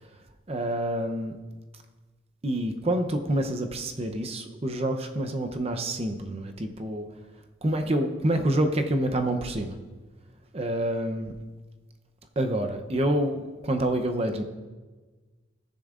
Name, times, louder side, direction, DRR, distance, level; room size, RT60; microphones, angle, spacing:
voice 1, 0.5-1.4 2.4-7.1 7.6-9.7 10.5-11.3 12.4-14.4, right 1 dB, 30° right, 5 dB, 0.6 m, -27 dB
14.5 x 9.9 x 2.5 m, 1.3 s
head